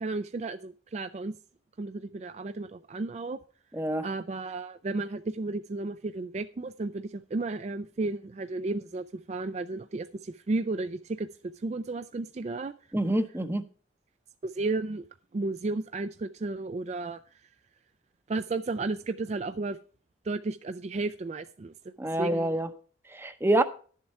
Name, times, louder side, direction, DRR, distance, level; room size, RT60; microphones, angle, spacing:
voice 1, 0.0-1.3 1.8-3.4 4.0-11.3 11.6-12.7 14.4-15.0 15.3-17.2 18.3-19.8 20.2-21.7 22.2-22.6, right 3 dB, 35° right, 0.4 m, -33 dB
voice 2, 3.7-4.1 12.9-13.7 22.0-22.7 23.1-23.6, right 1 dB, 10° right, 0.7 m, -26 dB
11.5 x 7.3 x 4.6 m
head